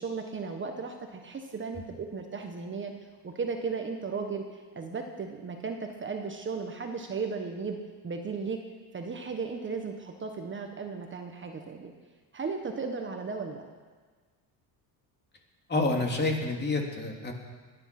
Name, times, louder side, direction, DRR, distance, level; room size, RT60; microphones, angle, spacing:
voice 1, 0.0-2.9 3.2-7.8 8.0-8.6 8.9-11.9 12.3-13.6, right 4 dB, 30° right, 4 dB, 1.4 m, -35 dB
voice 2, 15.7-17.3, left 2 dB, 25° left, 1 dB, 2.9 m, -28 dB
22.0 x 10.0 x 6.1 m, 1.5 s
cardioid pair, 125°, 41 cm